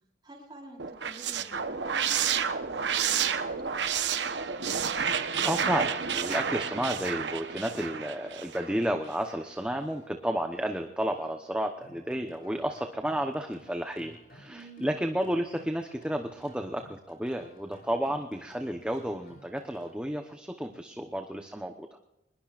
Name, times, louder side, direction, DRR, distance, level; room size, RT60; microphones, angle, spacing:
voice 1, 0.2-3.7 14.5-14.9, right 1 dB, 25° right, -3 dB, 4.6 m, -48 dB
sound 1, 0.8-8.9, right 7 dB, 80° right, 1.0 m, -30 dB
voice 2, 5.4-22.0, equal, 5° right, 4 dB, 0.9 m, -32 dB
sound 2, 6.8-19.9, left 1 dB, 50° left, 5.9 m, -58 dB
24.0 x 21.0 x 2.5 m, 0.92 s
head